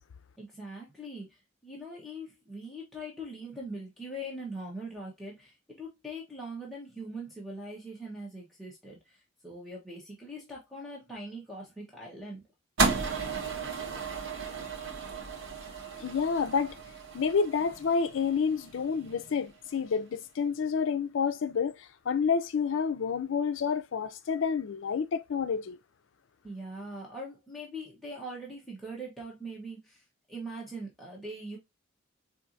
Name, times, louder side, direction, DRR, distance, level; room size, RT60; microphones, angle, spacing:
voice 1, 0.4-12.4 26.4-30.0 30.3-31.6, right 1 dB, ahead, 1.0 m, -42 dB
sound 1, 12.8-19.1, right 4 dB, 75° right, 1.0 m, -34 dB
voice 2, 16.0-16.8 17.1-25.8, left 6 dB, 70° left, 0.4 m, -29 dB
4.4 x 2.7 x 2.5 m
head